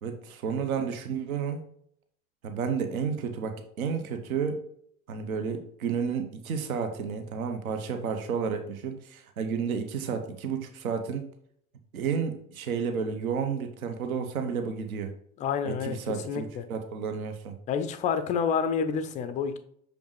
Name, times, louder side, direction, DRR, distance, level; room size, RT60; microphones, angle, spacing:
voice 1, 0.0-1.7 2.4-4.6 5.1-11.3 11.9-15.1 15.7-17.5, right 6 dB, 70° right, 6 dB, 0.8 m, -31 dB
voice 2, 15.4-16.0 16.3-16.6 17.7-19.6, left 6 dB, 20° left, 11 dB, 0.4 m, -28 dB
6.1 x 5.2 x 3.1 m, 0.67 s
figure-of-eight pair, 70°, 44 cm